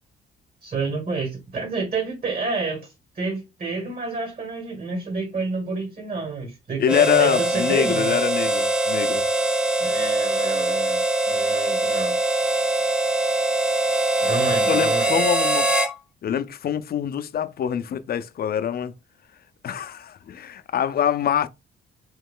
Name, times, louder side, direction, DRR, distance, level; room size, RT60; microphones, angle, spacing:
voice 1, 0.6-8.1 9.8-11.0 11.3-12.2 14.2-15.3, right 4 dB, 45° right, 1.9 m, -29 dB
voice 2, 6.8-9.2 14.7-15.7 16.2-18.9 19.6-21.5, left 9 dB, 50° left, 0.5 m, -24 dB
Harmonica, 6.8-15.9, right 2 dB, 5° right, 0.5 m, -22 dB
3.6 x 3.1 x 3.7 m
cardioid pair, 90°, 20 cm